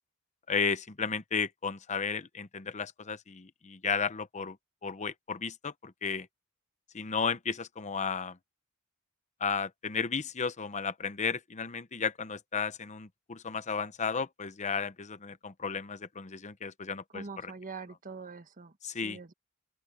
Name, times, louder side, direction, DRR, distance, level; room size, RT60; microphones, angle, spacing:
voice 1, 0.5-4.6 4.8-6.3 6.9-8.4 9.4-17.5 18.8-19.2, left 5 dB, 35° left, 0.8 m, -34 dB
voice 2, 17.1-18.7 19.0-19.3, right 4 dB, 40° right, 1.4 m, -43 dB
open air
head